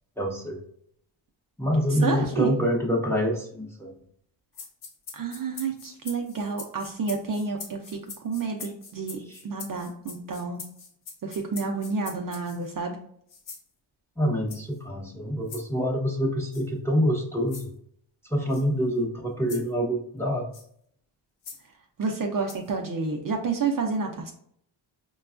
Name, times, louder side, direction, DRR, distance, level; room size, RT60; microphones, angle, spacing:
voice 1, 0.2-0.6 1.6-4.0 8.6-8.7 9.3-9.4 14.2-17.7 18.2-20.5, equal, 5° left, -2 dB, 0.9 m, -26 dB
voice 2, 2.0-2.5 5.1-10.6 11.2-13.0 22.0-24.3, right 4 dB, 45° right, 2 dB, 0.6 m, -30 dB
sound 1, 4.5-12.7 13.3-13.7 14.5-14.8 15.5-15.6 16.5-16.7 17.5-17.7 18.5-18.6 19.5-19.7 20.5-20.7 21.4-21.6 22.5-22.7, left 5 dB, 80° left, 1.1 m, -43 dB
5.2 x 2.3 x 2.4 m, 0.68 s
cardioid pair, 95°, 49 cm